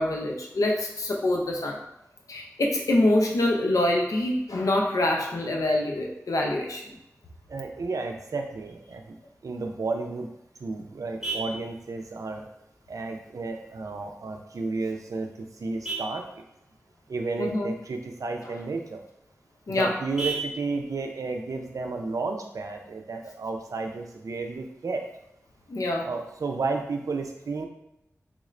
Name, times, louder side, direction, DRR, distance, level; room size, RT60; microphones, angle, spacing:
voice 1, 0.0-1.8 2.3-6.8 17.4-17.7 19.7-20.0 25.7-26.1, left 1 dB, 85° left, 0 dB, 0.6 m, -25 dB
voice 2, 7.5-9.2 9.4-10.3 10.6-12.5 12.9-16.4 17.1-19.0 19.8-25.0 26.0-27.7, right 3 dB, 90° right, 3 dB, 0.4 m, -32 dB
Vehicle horn car horn honking, 9.9-22.9, right 3 dB, 10° right, 1.0 m, -42 dB
3.4 x 2.5 x 3.1 m, 0.85 s
wide cardioid pair, 65°, 6 cm